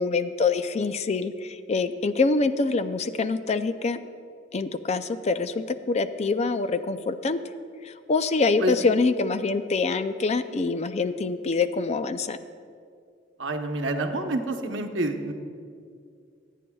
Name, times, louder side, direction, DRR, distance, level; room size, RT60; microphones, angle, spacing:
voice 1, 0.0-4.0 4.5-7.4 7.8-12.4, left 4 dB, 35° left, 11 dB, 0.4 m, -25 dB
voice 2, 13.4-15.3, right 1 dB, 80° right, 5 dB, 0.9 m, -27 dB
25.0 x 9.2 x 2.3 m, 2.3 s
head